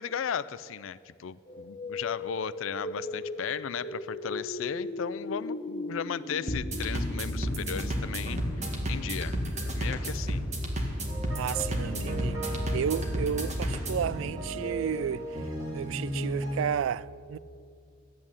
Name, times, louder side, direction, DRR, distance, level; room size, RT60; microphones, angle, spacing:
voice 1, 0.0-9.4 9.7-10.4, left 7 dB, 85° left, 0.4 m, -36 dB
sound 1, 1.5-10.4, left 2 dB, 35° left, 0.8 m, -39 dB
sound 2, 6.5-14.1, equal, 35° right, 1.7 m, -31 dB
sound 3, 11.1-16.6, right 1 dB, 15° right, 2.6 m, -37 dB
voice 2, 11.4-15.3 15.7-17.4, right 8 dB, 80° right, 0.3 m, -32 dB
12.5 x 8.6 x 8.9 m
head